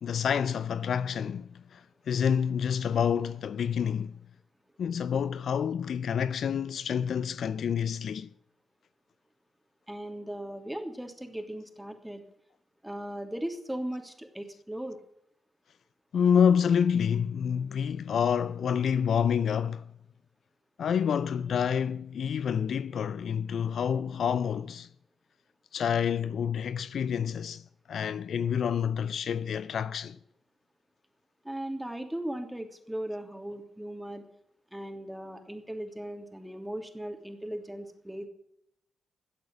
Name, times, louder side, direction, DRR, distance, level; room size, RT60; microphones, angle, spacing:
voice 1, 0.0-4.1 4.8-8.3 16.1-19.8 20.8-24.9 25.7-27.6 27.9-30.2, left 7 dB, 65° left, 0.5 m, -28 dB
voice 2, 9.9-12.2 12.8-15.0 31.4-34.2 34.7-38.3, right 1 dB, 5° right, 3.1 m, -38 dB
13.5 x 8.2 x 9.9 m
supercardioid pair, 45°, 0 cm